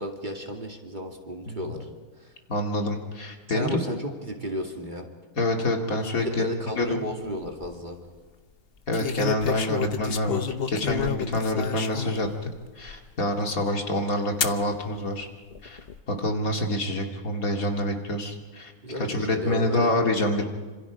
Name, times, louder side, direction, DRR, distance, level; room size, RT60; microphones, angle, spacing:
voice 1, 0.0-1.9 2.2-2.3 3.5-5.1 6.2-8.0 18.8-19.9, equal, 30° right, 3 dB, 2.3 m, -33 dB
voice 2, 2.5-3.8 5.4-6.5 6.8-7.0 8.9-10.4 10.7-15.3 15.6-15.8 16.1-18.7 19.0-20.4, left 1 dB, 65° left, 3 dB, 2.7 m, -27 dB
sound 1, 7.2-7.7 8.9-12.3 12.9-13.0 14.4-14.6 15.5-16.0, left 8 dB, 45° left, 1.0 m, -30 dB
27.0 x 26.5 x 5.0 m, 1.4 s
omnidirectional pair, 1.6 m